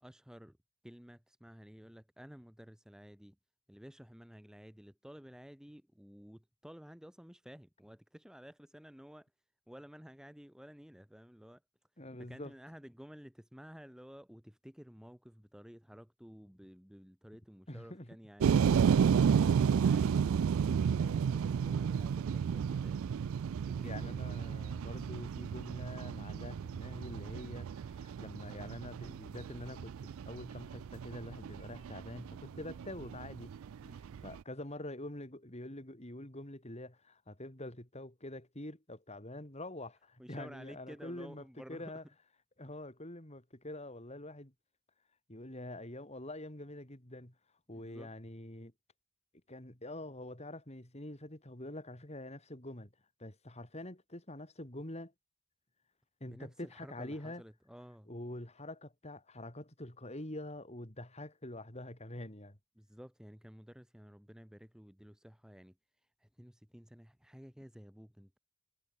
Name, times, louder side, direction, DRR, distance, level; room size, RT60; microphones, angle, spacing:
voice 1, 0.0-0.6 0.8-3.4 3.7-9.3 9.7-11.6 12.2-18.7 19.1-24.4 33.8-34.0 40.2-41.9 47.7-48.1 56.2-58.1 62.8-65.7 66.2-68.4, equal, 5° right, 0.9 m, -53 dB
voice 2, 12.0-12.5 17.7-18.2 23.8-33.5 34.0-42.0 42.6-44.5 45.3-47.3 47.7-48.7 49.5-52.9 53.2-55.1 56.2-57.4 58.1-62.6, left 1 dB, 30° left, 3.3 m, -46 dB
sound 1, 18.4-34.4, right 7 dB, 65° right, 0.3 m, -32 dB
head